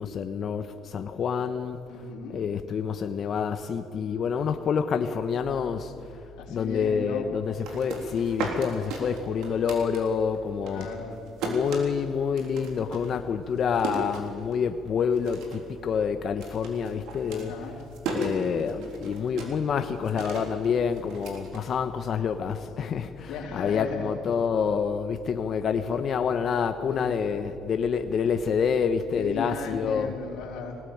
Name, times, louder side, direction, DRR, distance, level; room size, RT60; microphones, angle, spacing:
voice 1, 0.0-1.8 2.3-5.9 6.5-10.9 11.4-17.7 18.1-30.1, left 6 dB, 50° left, 1.1 m, -27 dB
voice 2, 1.9-2.4 6.4-7.5 10.6-11.2 17.3-17.8 23.3-24.1 26.9-27.2 29.1-30.8, left 4 dB, 80° left, 3.7 m, -36 dB
sound 1, 7.4-10.4 10.7-14.8 15.1-15.7 16.0-22.2, right 2 dB, 75° right, 3.6 m, -36 dB
21.0 x 18.5 x 8.8 m
supercardioid pair, 85°, 0 cm